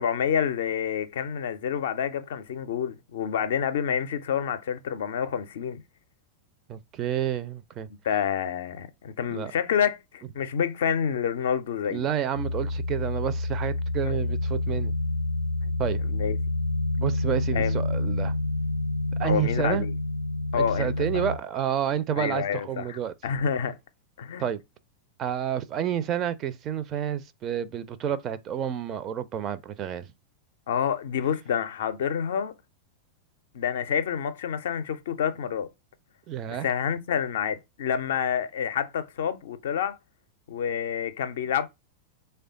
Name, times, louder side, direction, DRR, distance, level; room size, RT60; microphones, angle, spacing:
voice 1, 0.0-5.8 8.0-12.1 14.0-14.2 15.6-15.8 16.0-16.4 17.5-17.8 19.2-19.9 20.5-21.2 22.1-23.8 24.2-24.4 30.7-32.5 33.5-35.7 36.5-40.0 40.5-41.7, left 8 dB, 60° left, 0.4 m, -28 dB
voice 2, 6.7-7.9 9.3-9.5 11.9-14.9 15.8-16.0 17.0-18.3 19.2-19.9 20.5-23.1 24.4-24.6 25.2-30.1 36.3-36.7, right 9 dB, 30° right, 0.4 m, -29 dB
sound 1, 12.3-21.4, left 2 dB, 85° right, 0.5 m, -28 dB
3.2 x 2.2 x 3.7 m
figure-of-eight pair, 90°, 0 cm